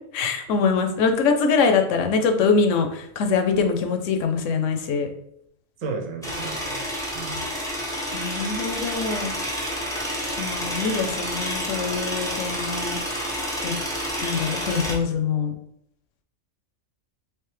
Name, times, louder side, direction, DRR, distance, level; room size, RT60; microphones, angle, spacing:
voice 1, 0.1-5.1 8.1-9.3 10.4-13.0 13.6-13.7 14.2-15.5, left 5 dB, 75° left, 5 dB, 0.9 m, -23 dB
voice 2, 5.8-7.5 10.6-10.8, right 4 dB, 80° right, 2 dB, 1.1 m, -34 dB
sound 1, 6.2-14.9, equal, 5° left, 0.4 m, -29 dB
3.3 x 3.0 x 3.2 m, 0.73 s
omnidirectional pair, 1.4 m